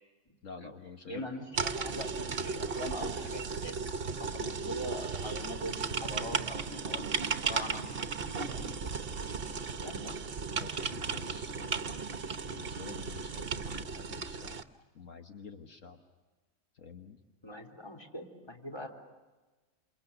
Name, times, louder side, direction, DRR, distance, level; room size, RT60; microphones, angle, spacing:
voice 1, 0.4-1.3 10.5-11.9 12.5-14.6 14.9-16.0 16.7-17.2, left 5 dB, 70° left, 4 dB, 1.8 m, -48 dB
voice 2, 1.1-3.7 4.2-7.1 7.4-8.9 9.8-10.1 10.5-10.6 17.4-18.9, left 1 dB, 20° left, 0 dB, 3.7 m, -42 dB
sound 1, 1.5-14.6, right 5 dB, 45° right, 1.2 m, -35 dB
28.5 x 28.0 x 6.8 m, 1.2 s
omnidirectional pair, 1.4 m